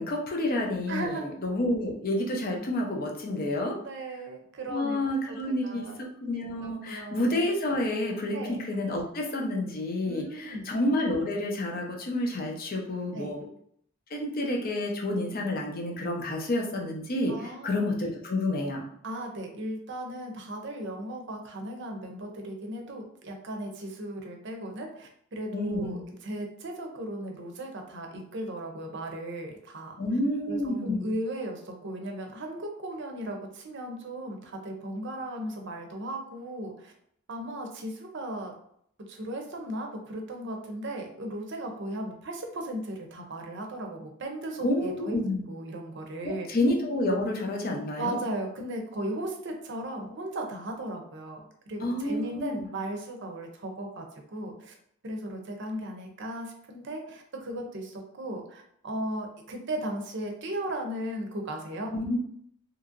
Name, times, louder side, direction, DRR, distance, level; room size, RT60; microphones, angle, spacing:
voice 1, 0.0-3.8 4.7-13.4 14.1-18.9 25.5-26.0 30.0-31.1 44.6-45.4 46.2-48.2 51.8-52.7 61.9-62.2, left 1 dB, 45° left, 0 dB, 0.6 m, -29 dB
voice 2, 0.9-1.3 3.8-5.0 5.3-5.4 5.6-5.9 6.3-7.2 8.3-8.6 10.0-10.7 13.1-13.3 17.3-17.8 19.0-30.0 30.5-36.9 37.3-38.5 39.0-45.2 45.5-46.5 48.0-54.7 55.0-61.9, right 1 dB, 60° right, 3 dB, 0.6 m, -36 dB
2.8 x 2.6 x 2.5 m, 0.68 s
head